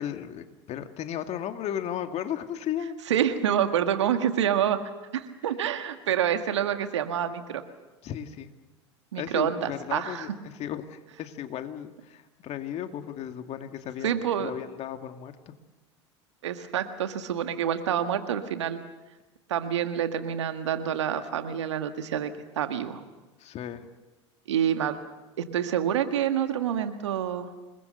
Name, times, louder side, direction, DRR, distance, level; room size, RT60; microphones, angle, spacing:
voice 1, 0.0-2.9 8.0-8.5 9.1-15.5 23.4-23.9, left 10 dB, 45° left, 7 dB, 2.2 m, -35 dB
voice 2, 3.1-4.8 5.1-7.6 9.1-10.3 14.0-14.5 16.4-18.8 19.5-23.0 24.5-25.0 25.4-27.5, right 9 dB, 80° right, 8 dB, 1.9 m, -27 dB
27.5 x 21.0 x 6.8 m, 1.1 s
hypercardioid pair, 75°, 15 cm